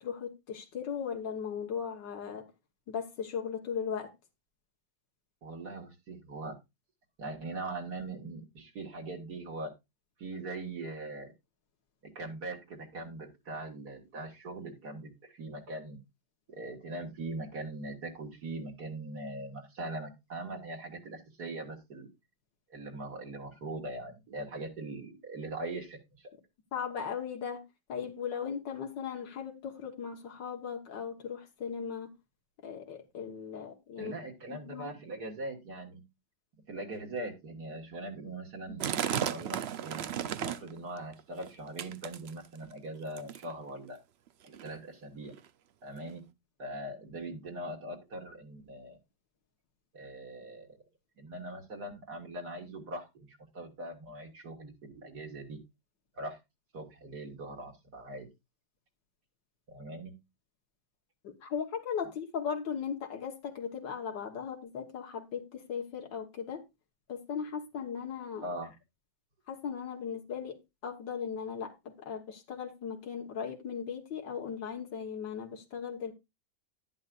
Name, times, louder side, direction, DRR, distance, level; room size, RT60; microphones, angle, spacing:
voice 1, 0.0-2.5 2.9-4.1 26.7-27.6 27.9-32.1 32.6-34.1 34.5-34.9 61.2-66.6 67.1-68.5 69.5-70.6 70.8-76.1, left 7 dB, 90° left, 2.0 m, -37 dB
voice 2, 5.4-6.5 7.2-9.7 10.2-11.3 12.0-16.0 16.5-22.1 22.7-26.4 34.0-36.0 36.7-40.0 40.4-44.0 44.4-45.3 45.8-46.2 46.6-49.0 49.9-50.7 51.2-55.6 56.2-56.4 56.7-58.3 59.7-60.1 68.4-68.7, right 2 dB, 65° right, 2.4 m, -41 dB
sound 1, 38.8-40.8 41.1-41.5 41.8-42.7 43.2-43.5 44.3-44.4 44.5-44.7 45.3-45.4 46.1-46.2, right 9 dB, 80° right, 0.5 m, -34 dB
11.0 x 10.5 x 2.5 m
omnidirectional pair, 1.9 m